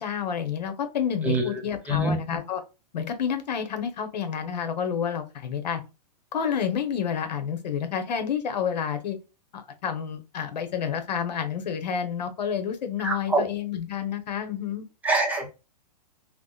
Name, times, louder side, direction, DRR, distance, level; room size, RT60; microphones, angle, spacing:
voice 1, 0.0-2.6 2.9-5.8 6.3-9.2 9.5-14.8, left 7 dB, 80° left, 8 dB, 0.9 m, -29 dB
voice 2, 13.0-13.4 15.0-15.5, right 1 dB, 5° right, 2 dB, 0.6 m, -24 dB
3.5 x 2.1 x 2.3 m, 0.29 s
hypercardioid pair, 150°, 21 cm